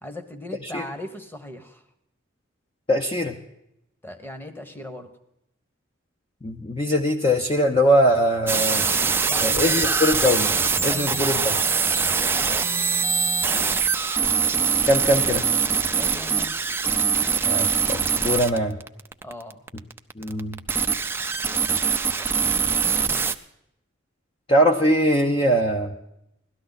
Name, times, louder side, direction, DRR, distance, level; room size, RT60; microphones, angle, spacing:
voice 1, 0.0-1.8 4.0-5.1 9.3-10.0 10.8-11.5 11.8-12.7 15.9-16.6 19.2-19.6, left 1 dB, 10° left, 7 dB, 1.1 m, -38 dB
voice 2, 2.9-3.3 6.4-8.8 9.4-10.5 10.8-11.6 14.9-15.4 17.5-18.8 20.2-20.6 24.5-25.9, equal, 25° left, 2 dB, 0.7 m, -21 dB
sound 1, 8.5-23.3, right 6 dB, 10° right, 0.5 m, -23 dB
17.0 x 12.5 x 4.0 m, 0.82 s
head